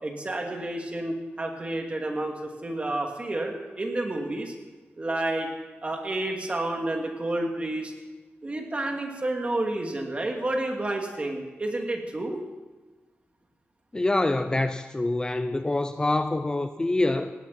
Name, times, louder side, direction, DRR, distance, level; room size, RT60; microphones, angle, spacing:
voice 1, 0.0-4.5 5.0-5.5 5.8-7.9 8.4-12.4, right 2 dB, 30° right, 1 dB, 2.5 m, -30 dB
voice 2, 13.9-17.3, left 2 dB, 20° left, 9 dB, 0.6 m, -25 dB
18.5 x 17.0 x 4.4 m, 1.2 s
wide cardioid pair, 140°, 4 cm